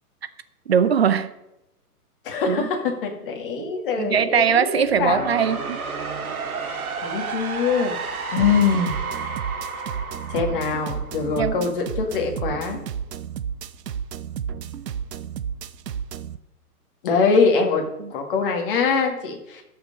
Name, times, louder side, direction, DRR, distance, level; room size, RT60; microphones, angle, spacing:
voice 1, 0.7-1.3 2.5-2.7 3.6-3.7 4.0-5.8 11.4-11.7 18.0-18.1, right 7 dB, 40° right, 13 dB, 0.6 m, -21 dB
voice 2, 2.2-5.2 6.6-8.0 8.3-8.9 10.3-12.8 17.0-17.8 18.1-19.6, left 5 dB, 35° left, 3 dB, 1.9 m, -23 dB
sound 1, 4.8-11.7, right 4 dB, 60° right, 2.3 m, -32 dB
sound 2, 8.4-16.4, right 8 dB, 85° right, 0.8 m, -32 dB
13.5 x 5.8 x 5.2 m, 0.88 s
hypercardioid pair, 165°, 47 cm